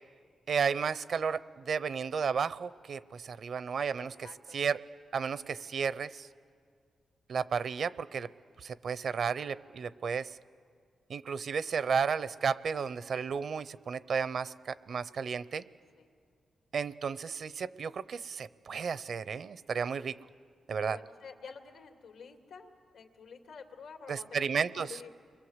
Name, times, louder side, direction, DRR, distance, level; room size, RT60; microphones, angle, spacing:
voice 1, 0.5-4.1 4.5-4.8 5.1-6.3 7.3-8.3 8.6-10.4 11.1-15.6 16.7-20.2 20.7-21.0 24.1-25.0, right 6 dB, 60° right, 16 dB, 0.7 m, -33 dB
voice 2, 4.0-4.6 16.0-16.1 20.8-25.1, left 5 dB, 85° left, 4 dB, 2.5 m, -49 dB
30.0 x 23.0 x 8.1 m, 2.1 s
cardioid pair, 115°, 0 cm